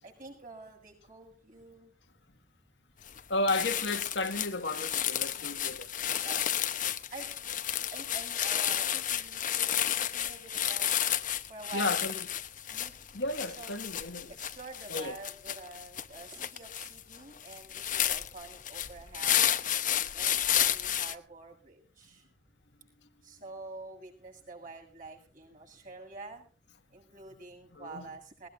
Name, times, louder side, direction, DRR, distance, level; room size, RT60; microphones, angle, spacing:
voice 1, 0.0-1.9 6.2-6.5 7.1-7.5 7.9-11.0 11.5-12.0 12.7-12.9 13.4-13.8 14.3-19.6 20.1-22.3 23.2-26.5 26.9-28.5, right 3 dB, 50° right, 7.7 m, -47 dB
sound 1, 3.1-3.2 3.5-21.1, left 10 dB, 50° left, 1.1 m, -31 dB
voice 2, 3.3-5.9 11.7-12.2 13.1-14.3 14.9-15.1 27.7-28.1, left 2 dB, 90° left, 2.0 m, -33 dB
20.0 x 19.5 x 2.7 m
head